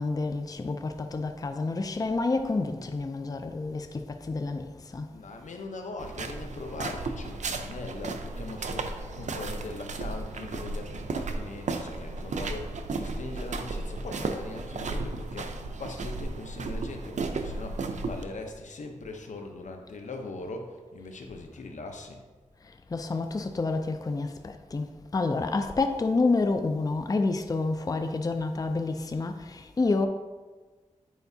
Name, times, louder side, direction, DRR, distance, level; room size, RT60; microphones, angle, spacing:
voice 1, 0.0-5.1 5.5-5.6 22.6-30.1, left 3 dB, 30° left, 0.4 m, -29 dB
voice 2, 5.1-22.2, left 3 dB, 80° left, 0.7 m, -41 dB
sound 1, 6.0-18.2, right 3 dB, 75° right, 0.5 m, -34 dB
9.2 x 4.6 x 2.7 m
wide cardioid pair, 65°, 12 cm